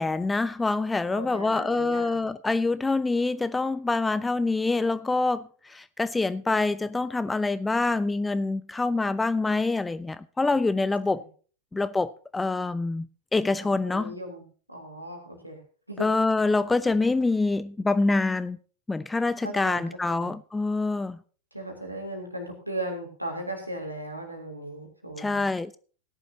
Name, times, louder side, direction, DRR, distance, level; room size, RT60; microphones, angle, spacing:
voice 1, 0.0-11.2 11.7-14.2 16.0-18.6 18.9-21.2 25.2-25.8, left 3 dB, 10° left, 0.5 m, -26 dB
voice 2, 1.0-2.3 11.0-11.2 13.6-14.4 14.7-15.6 15.9-16.1 19.4-20.3 21.5-25.4, right 1 dB, 90° right, 3.3 m, -37 dB
17.0 x 11.0 x 2.8 m
figure-of-eight pair, 90°, 0 cm